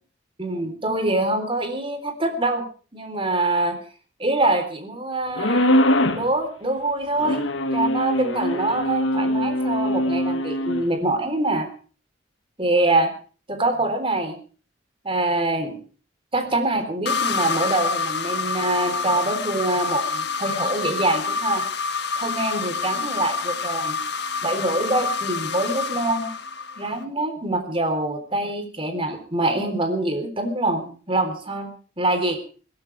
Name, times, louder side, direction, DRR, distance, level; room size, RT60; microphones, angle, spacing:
voice 1, 0.4-2.6 2.9-3.8 4.2-5.7 6.1-7.4 7.7-11.7 12.6-13.1 13.5-14.4 15.0-15.8 16.3-21.6 22.2-24.0 24.4-26.3 26.8-32.4, right 2 dB, 30° right, 7 dB, 3.7 m, -24 dB
sound 1, 5.4-6.3 7.2-10.9, left 1 dB, 85° left, 1.9 m, -22 dB
sound 2, 17.1-27.0, left 4 dB, 60° left, 1.5 m, -27 dB
22.5 x 16.5 x 3.4 m, 0.40 s
head